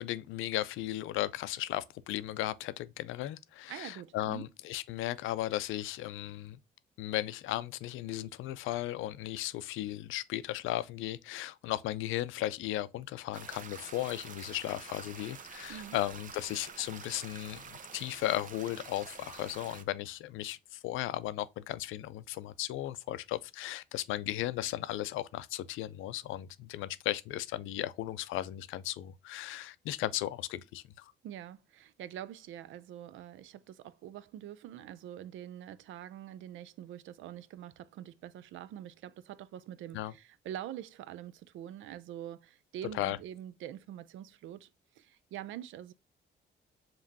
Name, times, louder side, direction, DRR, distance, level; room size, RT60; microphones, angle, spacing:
voice 1, 0.0-6.6 7.0-31.1 39.9-40.1 42.9-43.2, left 14 dB, 85° left, 0.4 m, -36 dB
voice 2, 3.7-4.5 15.7-16.0 31.2-44.7 45.0-45.9, right 11 dB, 80° right, 0.4 m, -45 dB
sound 1, 13.3-19.8, right 6 dB, 40° right, 0.7 m, -48 dB
5.0 x 3.0 x 2.6 m
cardioid pair, 90°, 20 cm